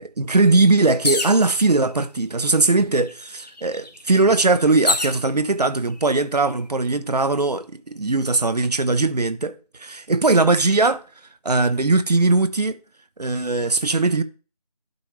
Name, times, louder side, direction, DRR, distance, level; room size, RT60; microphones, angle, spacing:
voice 1, 0.0-11.0 11.4-12.8 13.2-14.2, right 3 dB, 80° right, 0.9 m, -20 dB
sound 1, 1.0-1.5 2.4-2.5 2.8-5.2 6.0-6.5, left 2 dB, 85° left, 1.5 m, -26 dB
11.0 x 5.3 x 3.3 m
figure-of-eight pair, 165°, 20 cm